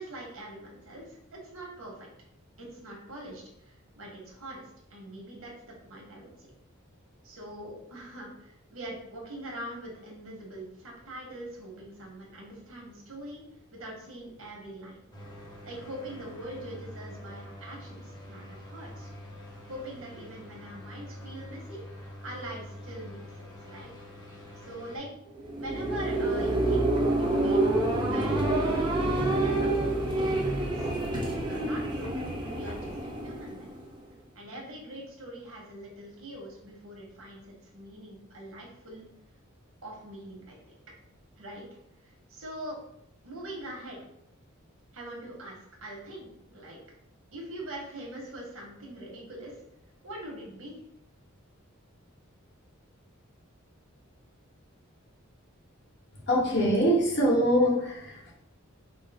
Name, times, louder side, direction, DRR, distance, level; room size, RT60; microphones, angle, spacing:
voice 1, 0.0-2.1 2.6-6.5 7.2-13.4 13.7-15.0 15.6-19.1 19.7-23.9 24.6-25.1 25.6-29.7 30.1-30.9 31.2-33.7 34.3-39.0 39.8-40.6 41.4-41.7 42.0-42.8 43.2-44.0 44.9-46.8 47.3-49.6 50.0-50.8, right 1 dB, 85° right, -1 dB, 1.2 m, -43 dB
sound 1, 15.1-25.0, left 1 dB, 20° left, 0.8 m, -46 dB
sound 2, 25.4-34.0, right 2 dB, 20° right, 0.6 m, -27 dB
voice 2, 56.2-58.3, equal, 55° left, -2 dB, 1.0 m, -24 dB
4.5 x 2.0 x 3.4 m, 0.76 s
head